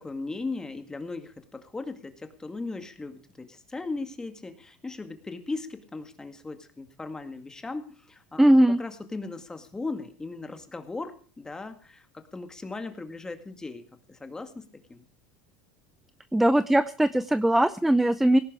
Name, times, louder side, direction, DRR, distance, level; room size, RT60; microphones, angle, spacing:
voice 1, 0.0-13.8 14.1-14.6 14.9-15.1, left 3 dB, 10° left, 8 dB, 2.0 m, -37 dB
voice 2, 8.4-8.8 16.3-18.4, right 1 dB, 5° right, 15 dB, 0.5 m, -20 dB
18.0 x 11.0 x 4.8 m, 0.43 s
supercardioid pair, 110°, 5 cm